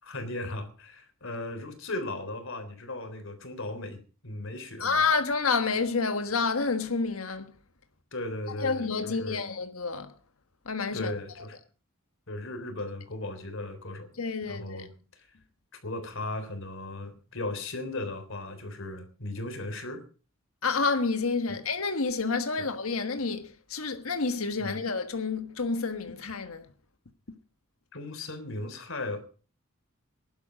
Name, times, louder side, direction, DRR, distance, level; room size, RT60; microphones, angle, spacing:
voice 1, 0.0-5.0 8.1-9.4 10.9-11.6 12.3-14.1 14.5-14.9 15.2-15.3 15.7-20.0 21.5-21.6 22.6-22.7 24.6-24.8 27.9-29.2, left 2 dB, 65° left, 3.6 m, -37 dB
voice 2, 4.8-7.5 8.6-10.1 10.6-11.1 14.2-14.9 20.6-26.7, left 4 dB, 85° left, 1.4 m, -29 dB
16.5 x 12.0 x 5.1 m
head